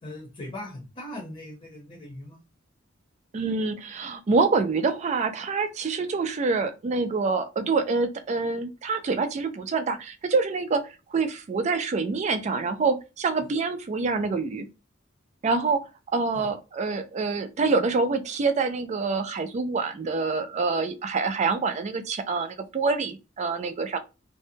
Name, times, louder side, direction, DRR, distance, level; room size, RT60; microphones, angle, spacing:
voice 1, 0.0-2.4 16.3-16.5, left 1 dB, 35° left, 0.8 m, -39 dB
voice 2, 3.3-14.7 15.4-24.0, right 4 dB, 35° right, 0.3 m, -26 dB
2.6 x 2.1 x 2.7 m
head